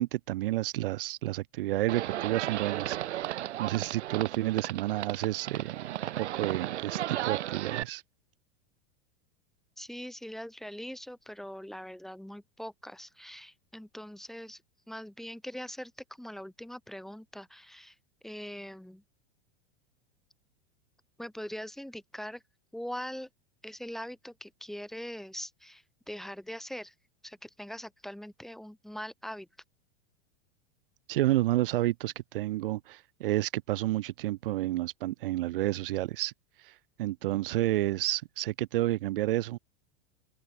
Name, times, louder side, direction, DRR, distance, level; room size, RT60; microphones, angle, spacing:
voice 1, 0.0-3.0 3.6-5.9 6.2-8.0 31.1-36.3 37.0-39.6, right 16 dB, 50° right, 3.1 m, -30 dB
Livestock farm animals working animals, 1.9-7.8, right 13 dB, 85° right, 2.4 m, -34 dB
voice 2, 9.8-14.6 14.9-18.0 18.2-19.0 21.2-22.4 22.7-23.3 23.6-26.9 27.2-29.5, equal, ahead, 3.4 m, -42 dB
open air
supercardioid pair, 180°, 34 cm